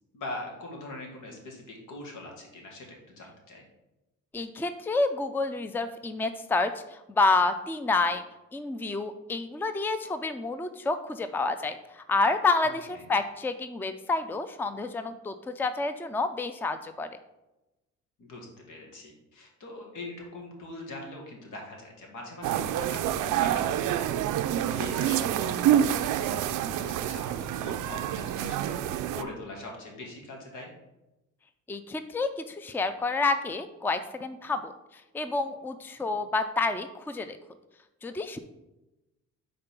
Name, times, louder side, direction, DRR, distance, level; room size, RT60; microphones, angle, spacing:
voice 1, 0.1-3.6 12.9-13.1 18.2-24.1 24.5-30.7, left 2 dB, 80° left, 0 dB, 1.9 m, -42 dB
voice 2, 4.3-8.2 8.5-17.1 31.7-34.7 35.1-37.4 38.0-38.4, left 3 dB, 5° left, 10 dB, 0.4 m, -29 dB
sound 1, 22.4-29.2, right 10 dB, 90° right, 0.5 m, -27 dB
5.2 x 3.8 x 5.9 m, 0.98 s
cardioid pair, 90°, 30 cm